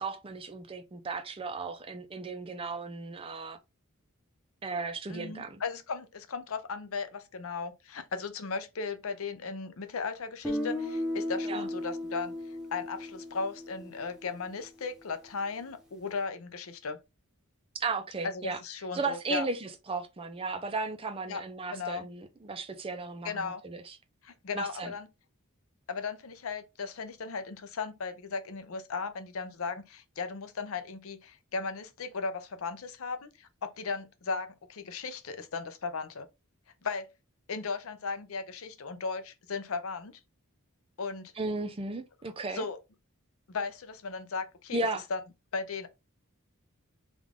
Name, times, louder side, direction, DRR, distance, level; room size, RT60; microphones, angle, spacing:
voice 1, 0.0-3.6 4.6-5.6 11.5-11.6 17.7-18.6 18.9-24.0 24.5-24.9 41.4-42.6 44.7-45.0, right 3 dB, 25° right, 0.5 m, -35 dB
voice 2, 5.1-12.3 12.7-17.0 18.2-19.5 21.3-21.4 21.7-22.1 23.2-23.6 24.2-25.1 25.9-36.3 36.8-37.1 37.5-40.2 41.0-41.3 42.5-42.8 43.5-44.8 45.1-45.2 45.5-45.9, left 4 dB, 70° left, 0.6 m, -36 dB
Guitar, 10.4-14.4, left 1 dB, ahead, 0.8 m, -35 dB
3.7 x 2.4 x 3.5 m
head